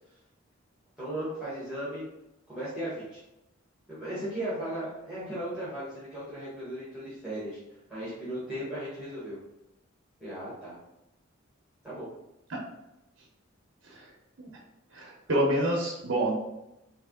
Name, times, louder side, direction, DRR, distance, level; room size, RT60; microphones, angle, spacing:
voice 1, 1.0-2.0 2.5-3.2 3.9-7.6 7.9-9.4 10.2-10.8 11.8-12.1, right 1 dB, 5° right, -10 dB, 1.3 m, -36 dB
voice 2, 14.9-16.6, right 1 dB, 75° right, -2 dB, 0.9 m, -28 dB
3.4 x 3.2 x 3.7 m, 0.89 s
head